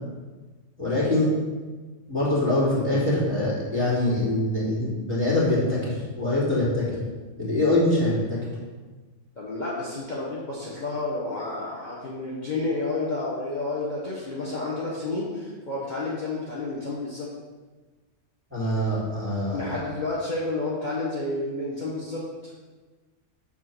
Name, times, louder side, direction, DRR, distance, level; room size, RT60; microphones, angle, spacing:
voice 1, 0.8-1.3 2.1-7.0 7.4-8.4 18.5-19.8, left 1 dB, 10° right, -8 dB, 2.5 m, -24 dB
voice 2, 9.4-17.3 19.5-22.2, left 2 dB, 35° left, -7 dB, 1.3 m, -30 dB
6.7 x 4.5 x 6.0 m, 1.3 s
omnidirectional pair, 1.4 m